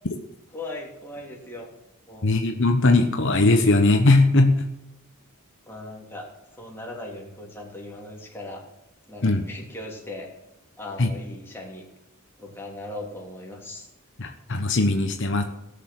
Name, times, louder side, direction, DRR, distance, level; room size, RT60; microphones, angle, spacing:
voice 1, 0.5-1.7 2.1-2.4 5.7-6.3 6.6-8.6 9.1-10.3 10.8-11.9 12.4-13.9, left 2 dB, 10° left, -2 dB, 3.2 m, -38 dB
voice 2, 2.2-4.6 9.2-9.4 11.0-11.1 14.2-15.4, left 2 dB, 60° left, 5 dB, 1.1 m, -19 dB
18.0 x 6.7 x 7.7 m, 0.89 s
head